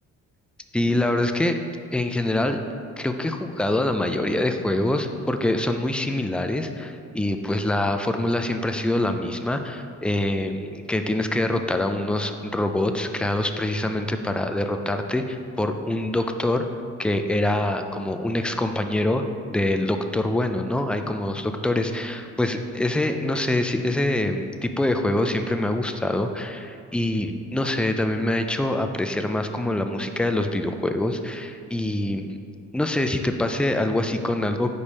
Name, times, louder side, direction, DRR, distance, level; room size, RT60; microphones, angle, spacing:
voice 1, 0.7-1.6 1.9-2.6 3.0-16.7 17.0-32.4 32.7-34.7, left 1 dB, 5° left, 6 dB, 0.3 m, -25 dB
5.3 x 5.0 x 4.1 m, 2.2 s
cardioid pair, 90°, 30 cm